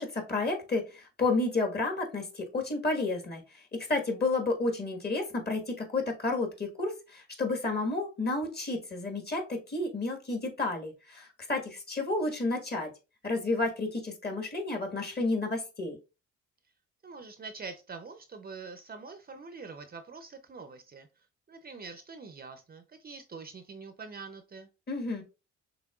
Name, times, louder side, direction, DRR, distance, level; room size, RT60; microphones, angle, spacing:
voice 1, 0.0-12.9 13.2-16.0 24.9-25.2, left 3 dB, 35° left, 3 dB, 1.5 m, -31 dB
voice 2, 17.0-21.1 21.5-24.7, right 4 dB, 30° right, 9 dB, 0.6 m, -45 dB
5.8 x 3.4 x 2.4 m, 0.29 s
cardioid pair, 90°, 30 cm